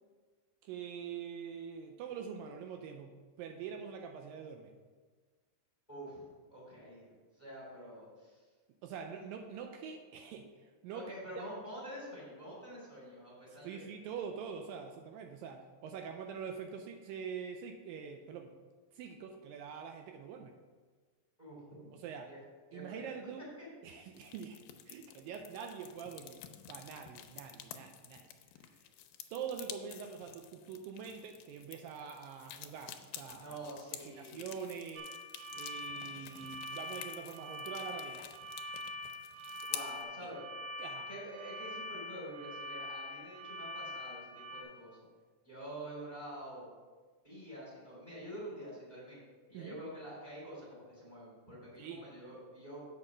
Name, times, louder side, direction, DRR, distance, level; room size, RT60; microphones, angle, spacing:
voice 1, 0.6-4.7 8.8-10.5 10.8-11.5 13.6-18.5 18.9-20.5 21.9-22.3 22.7-23.5 23.8-24.6 24.9-26.4 26.7-28.3 28.7-28.8 29.3-33.6 34.1-35.1 35.6-38.3 40.8-41.1 49.5-49.8 51.8-52.0, right 7 dB, 80° right, 4 dB, 2.2 m, -44 dB
voice 2, 5.9-6.2 6.5-8.4 10.9-13.8 21.4-21.9 22.3-22.4 22.7-23.1 33.4-34.5 39.7-40.4 41.1-45.0 45.4-46.7 47.2-49.2 49.5-52.9, right 1 dB, 15° left, -7 dB, 2.5 m, -47 dB
sound 1, 24.1-40.0, left 11 dB, 80° left, 2.4 m, -50 dB
sound 2, 35.0-44.6, left 1 dB, 60° right, 2.6 m, -44 dB
8.1 x 5.4 x 6.0 m, 1.4 s
omnidirectional pair, 4.2 m